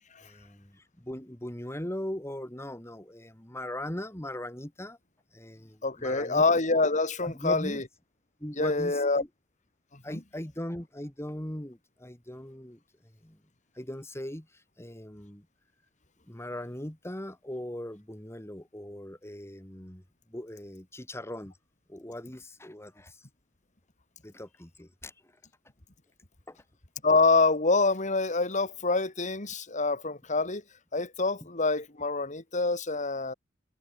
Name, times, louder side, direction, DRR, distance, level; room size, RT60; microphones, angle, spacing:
voice 1, 0.2-5.0 5.3-6.5 7.2-7.8 8.4-9.3 10.0-12.8 13.2-13.4 13.8-14.5 14.8-15.5 16.3-20.0 20.3-21.5 21.9-23.2 24.2-25.1 26.5-26.6 31.4-31.5, left 1 dB, 15° left, 2.4 m, -39 dB
voice 2, 5.8-7.8 8.6-9.2 10.1-10.2 27.0-30.6 30.9-33.3, left 3 dB, 40° left, 2.8 m, -26 dB
head